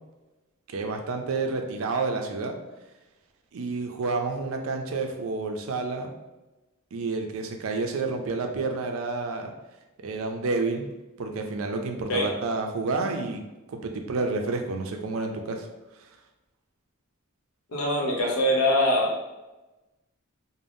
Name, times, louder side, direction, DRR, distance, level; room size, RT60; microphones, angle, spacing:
voice 1, 0.7-2.6 3.5-6.1 6.9-9.5 10.0-10.9 11.2-13.4 13.7-15.7, right 3 dB, 75° right, 4 dB, 0.4 m, -29 dB
voice 2, 17.7-19.1, left 1 dB, 80° left, -2 dB, 0.8 m, -23 dB
3.4 x 2.1 x 2.5 m, 1.1 s
head